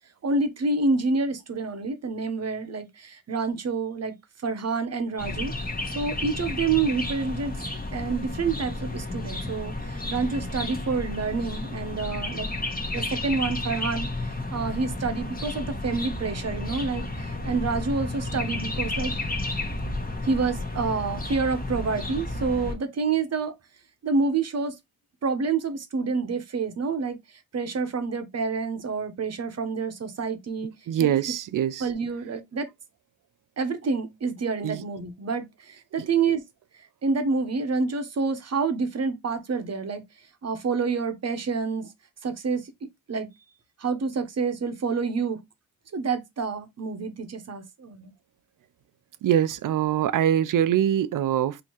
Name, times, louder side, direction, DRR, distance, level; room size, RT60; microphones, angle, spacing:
voice 1, 0.2-4.1 4.4-5.5 5.9-7.6 7.9-12.5 12.9-14.1 14.5-19.1 20.2-23.5 24.0-24.7 25.2-27.2 27.5-30.7 31.0-31.1 31.8-32.7 33.6-36.4 37.0-40.0 40.4-41.9 42.2-42.7 43.1-43.3 43.8-45.4 45.9-48.1, right 4 dB, 50° right, 0.9 m, -28 dB
sound 1, 5.2-22.7, left 2 dB, 25° left, 1.1 m, -32 dB
voice 2, 30.9-31.9 34.6-34.8 36.0-36.1 49.2-51.6, right 10 dB, 65° right, 0.5 m, -23 dB
4.5 x 2.8 x 2.9 m
cardioid pair, 75°, 34 cm